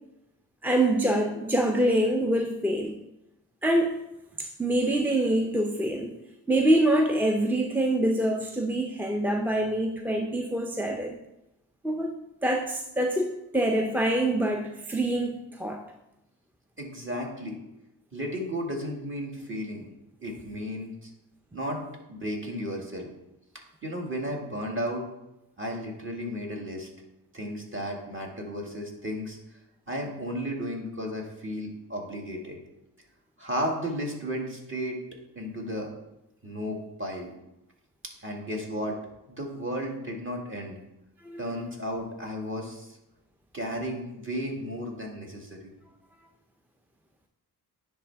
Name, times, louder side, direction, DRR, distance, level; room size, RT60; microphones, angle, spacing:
voice 1, 0.6-3.0 3.6-4.0 4.4-6.2 6.5-11.2 11.8-12.2 12.4-15.8 41.2-41.4, right 1 dB, 5° right, 3 dB, 0.4 m, -25 dB
voice 2, 16.8-17.6 18.1-19.9 20.2-21.1 21.5-21.8 22.1-23.1 23.5-25.1 25.6-26.9 27.3-29.4 29.9-32.6 33.4-35.0 35.4-35.9 36.4-37.3 38.2-39.0 39.3-40.8 41.4-43.0 43.5-45.7, equal, 30° right, 0 dB, 1.9 m, -34 dB
10.0 x 3.6 x 3.4 m, 0.90 s
cardioid pair, 70°, 40 cm